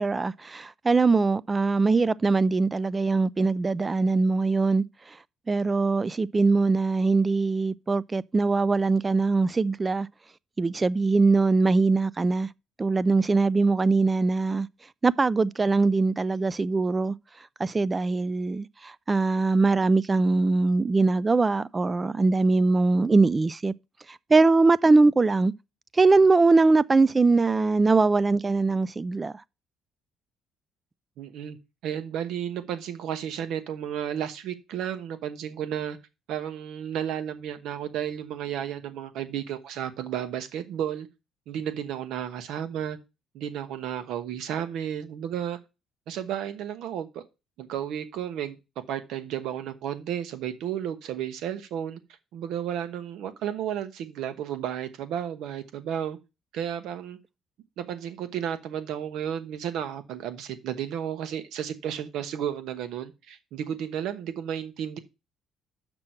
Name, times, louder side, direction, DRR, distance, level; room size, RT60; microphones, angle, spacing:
voice 1, 0.0-4.8 5.5-10.1 10.6-12.5 12.8-14.7 15.0-17.1 17.6-23.7 24.3-25.5 25.9-29.3, right 3 dB, 25° right, 0.4 m, -22 dB
voice 2, 31.2-31.6 31.8-36.0 36.3-41.1 41.5-43.0 43.3-45.6 46.1-47.2 47.6-48.6 48.9-52.0 52.3-56.2 56.5-57.2 57.8-65.0, right 9 dB, 80° right, 1.1 m, -33 dB
6.4 x 6.1 x 5.7 m
cardioid pair, 100°, 0 cm